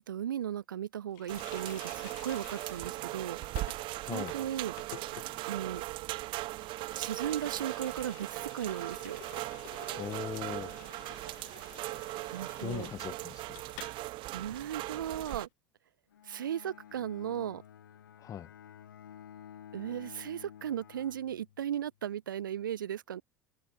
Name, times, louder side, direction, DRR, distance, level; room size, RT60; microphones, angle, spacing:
voice 1, 0.0-3.4 4.0-4.7 5.5-5.8 6.9-9.2 12.3-12.9 14.3-15.5 16.2-17.6 19.7-23.2, right 10 dB, 75° right, 0.8 m, -36 dB
Water tap faucet, 1.1-14.0 14.3-14.4 14.7-15.4, left 29 dB, 60° left, 1.5 m, -52 dB
sound 1, 1.3-15.5, right 19 dB, 50° right, 2.1 m, -39 dB
voice 2, 4.0-4.3 10.0-10.8 12.6-13.6 18.2-18.5, left 10 dB, 30° left, 0.6 m, -39 dB
Bowed string instrument, 16.1-21.9, left 9 dB, 75° left, 3.2 m, -52 dB
figure-of-eight pair, 70°, 11 cm